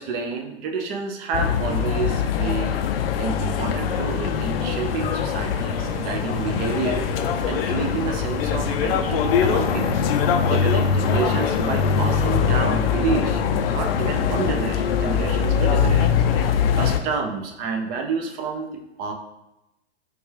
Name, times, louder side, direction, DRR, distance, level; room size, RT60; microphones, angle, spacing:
voice 1, 0.0-2.8 3.2-7.0 7.4-13.4 13.7-19.1, right 5 dB, 25° right, 4 dB, 0.5 m, -29 dB
sound 1, 1.3-17.0, left 7 dB, 60° left, 0.5 m, -22 dB
sound 2, 5.8-12.6, right 2 dB, 85° right, 1.2 m, -35 dB
5.1 x 2.4 x 3.2 m, 0.91 s
hypercardioid pair, 110°, 34 cm